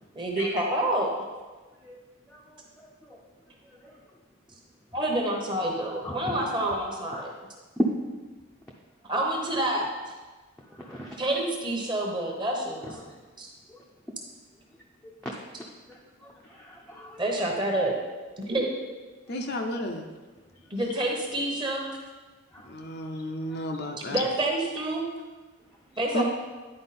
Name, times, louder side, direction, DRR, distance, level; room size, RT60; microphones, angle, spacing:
voice 1, 0.1-1.1 4.9-7.3 9.1-9.9 11.2-13.0 13.4-13.5 17.2-18.0 18.4-18.7 20.7-21.9 24.0-25.1 26.0-26.2, right 1 dB, 20° right, 0 dB, 1.0 m, -28 dB
voice 2, 6.0-6.4 7.8-7.9 10.8-11.2 15.0-15.1 15.9-16.0 16.2-17.5 22.5-22.7, right 1 dB, 5° left, -5 dB, 0.6 m, -34 dB
voice 3, 19.3-20.0 22.6-24.3 26.1-26.2, left 1 dB, 45° left, 3 dB, 0.6 m, -32 dB
9.8 x 4.6 x 4.2 m, 1.3 s
head